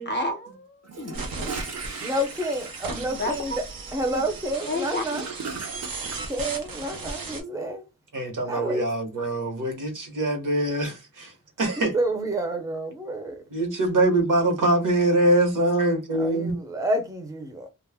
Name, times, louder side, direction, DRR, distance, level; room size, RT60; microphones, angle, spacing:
voice 1, 0.1-1.6 2.9-3.6 4.1-4.2 4.6-5.2, left 1 dB, 35° left, 0.6 m, -31 dB
Gurgling / Toilet flush, 0.8-6.2, right 4 dB, 50° right, 0.6 m, -38 dB
sound 1, 1.1-7.4, right 3 dB, 90° right, 0.7 m, -36 dB
voice 2, 2.0-3.6 3.9-5.2 6.3-7.8 8.5-8.8 11.8-13.3 16.2-17.7, right 1 dB, 10° right, 0.6 m, -29 dB
voice 3, 8.1-11.9 13.5-16.6, right 1 dB, 65° right, 1.0 m, -23 dB
2.3 x 2.0 x 3.3 m
wide cardioid pair, 115°, 34 cm